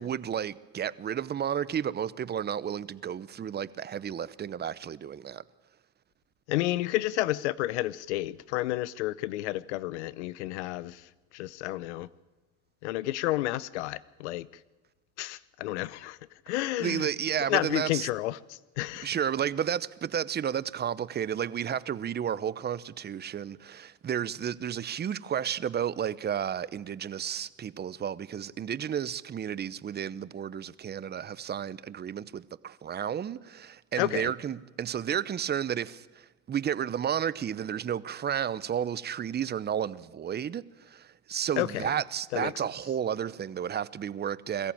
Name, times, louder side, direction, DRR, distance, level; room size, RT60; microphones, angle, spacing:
voice 1, 0.0-5.4 16.8-18.1 19.0-44.7, right 9 dB, 30° right, 0.8 m, -32 dB
voice 2, 6.5-11.0 11.3-12.1 12.8-14.5 15.2-16.2 16.5-17.1 17.5-18.4 18.8-19.1 34.0-34.3 41.6-41.9 42.3-42.5, left 16 dB, 85° left, 0.8 m, -30 dB
22.0 x 14.5 x 8.8 m
supercardioid pair, 85°, 33 cm